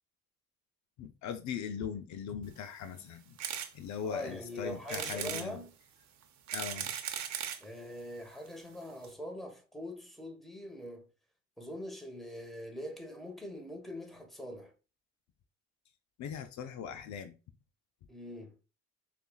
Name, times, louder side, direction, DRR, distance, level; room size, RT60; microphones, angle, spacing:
voice 1, 1.0-3.4 3.7-5.6 6.5-6.9 16.2-17.3, left 7 dB, 70° left, 0.6 m, -40 dB
sound 1, 3.4-3.7 4.2-4.3 4.9-5.5 6.2-7.6 8.5-8.6 8.7-8.8 9.0-9.1, right 9 dB, 70° right, 0.7 m, -37 dB
voice 2, 4.0-5.7 7.6-11.1 11.6-14.7 18.1-18.6, left 1 dB, ahead, 1.2 m, -43 dB
6.7 x 2.4 x 2.3 m
cardioid pair, 85°, 29 cm